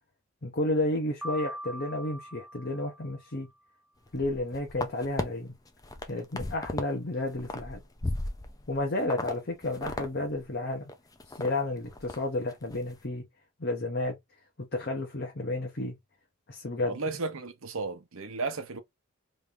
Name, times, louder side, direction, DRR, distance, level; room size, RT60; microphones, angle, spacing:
voice 1, 0.4-3.5 4.1-5.6 6.1-7.8 8.7-10.9 11.3-13.3 13.6-14.2 14.6-16.0 16.5-17.0, left 2 dB, 50° left, 0.8 m, -31 dB
Piano, 1.2-3.4, equal, ahead, 0.8 m, -41 dB
sound 1, 4.1-5.2 5.7-6.9 7.2-8.7 9.1-9.3 9.6-10.1 10.4-10.5 10.9-11.5 11.8-12.2 12.5-12.8, left 2 dB, 15° left, 0.5 m, -35 dB
voice 2, 16.9-18.8, right 3 dB, 75° right, 0.8 m, -34 dB
3.2 x 2.7 x 3.4 m
head